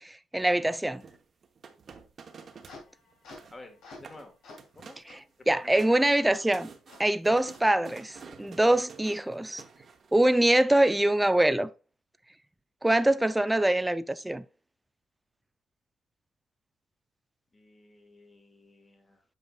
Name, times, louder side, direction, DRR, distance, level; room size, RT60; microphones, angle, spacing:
voice 1, 0.0-1.1 5.1-5.2 5.5-6.7 7.0-9.6 10.1-11.7 12.8-14.4, right 1 dB, 10° right, 0.4 m, -24 dB
sound 1, 1.0-2.8 3.1-3.6 3.9-4.3 4.6-5.1 5.5-10.2, right 5 dB, 50° right, 0.9 m, -49 dB
sound 2, 2.3-4.2 4.4-4.7 5.1-5.2 5.7-5.8 6.3-6.4 6.9-7.0 7.5-7.6 8.2-8.3, left 2 dB, 80° left, 2.4 m, -50 dB
voice 2, 3.5-4.3 4.7-5.0 5.4-5.8 17.5-19.2, left 2 dB, 25° left, 1.5 m, -52 dB
7.9 x 5.3 x 2.3 m
cardioid pair, 90°, 0 cm